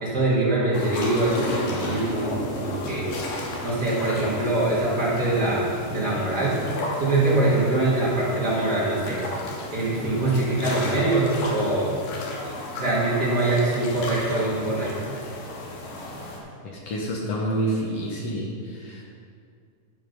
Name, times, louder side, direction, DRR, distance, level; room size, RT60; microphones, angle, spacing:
voice 1, 0.0-3.1 3.6-6.6 7.0-9.3 9.7-12.0 12.7-15.1, right 2 dB, 40° right, -7 dB, 1.7 m, -23 dB
sound 1, 0.7-16.4, left 2 dB, 90° left, 2.9 m, -34 dB
voice 2, 16.6-19.1, right 1 dB, 65° left, -2 dB, 1.6 m, -28 dB
11.0 x 5.0 x 5.3 m, 2.3 s
omnidirectional pair, 3.8 m